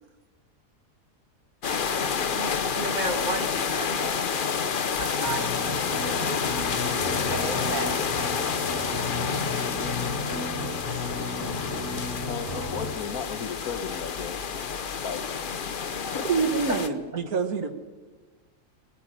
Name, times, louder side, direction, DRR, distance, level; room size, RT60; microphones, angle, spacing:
sound 1, 1.6-16.9, left 6 dB, 45° left, 0.9 m, -29 dB
voice 1, 2.3-4.2 5.0-6.5 6.9-8.0, right 2 dB, 30° right, 4 dB, 2.0 m, -34 dB
sound 2, 5.2-13.0, left 2 dB, 15° left, 3.9 m, -34 dB
voice 2, 12.3-14.5 15.0-15.2 15.7-16.3 16.6-16.9, left 7 dB, 90° left, 6 dB, 1.5 m, -36 dB
voice 3, 16.3-17.7, right 5 dB, 85° right, 8 dB, 1.9 m, -27 dB
20.5 x 15.0 x 9.1 m, 1.3 s
omnidirectional pair, 1.5 m